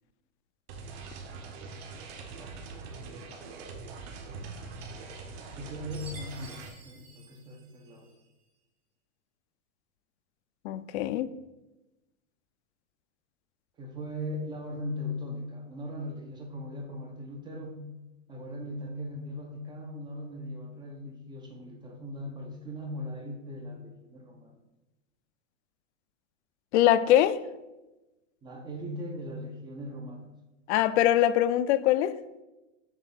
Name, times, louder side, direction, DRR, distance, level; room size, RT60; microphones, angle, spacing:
sound 1, 0.7-6.7, right 4 dB, 55° right, 1.4 m, -43 dB
voice 1, 5.6-6.6 6.8-8.1 13.8-17.9 18.3-24.5 28.4-30.3, left 1 dB, 10° right, 0.5 m, -39 dB
Chime, 5.9-8.2, right 3 dB, 90° right, 1.6 m, -51 dB
voice 2, 10.6-11.3 26.7-27.4 30.7-32.2, left 12 dB, 60° left, 0.5 m, -23 dB
7.3 x 3.5 x 5.7 m
supercardioid pair, 150°, 38 cm